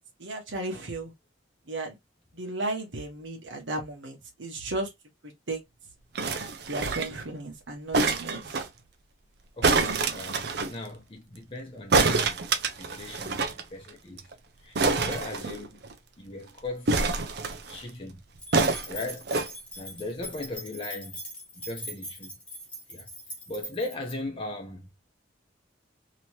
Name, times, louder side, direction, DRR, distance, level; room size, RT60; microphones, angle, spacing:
voice 1, 0.2-1.1 1.7-2.0 2.3-4.9 5.2-5.6 6.7-8.5, right 2 dB, 70° right, 1.1 m, -34 dB
sound 1, 6.2-7.2 7.9-8.7 9.6-10.7 11.9-13.6 13.9-14.0 14.2-14.3 14.8-15.9 16.9-17.8 18.5-19.5 20.2-20.3, right 3 dB, 55° right, 0.5 m, -26 dB
voice 2, 9.6-12.4 12.7-14.3 14.6-14.8 15.0-15.8 16.2-17.0 17.7-18.2 18.9-19.3 19.8-21.2 21.6-22.4 22.9-23.1 23.5-24.9, left 2 dB, 25° left, 0.7 m, -38 dB
sound 2, 18.4-24.1, right 1 dB, 5° left, 1.0 m, -42 dB
3.0 x 2.9 x 2.9 m
head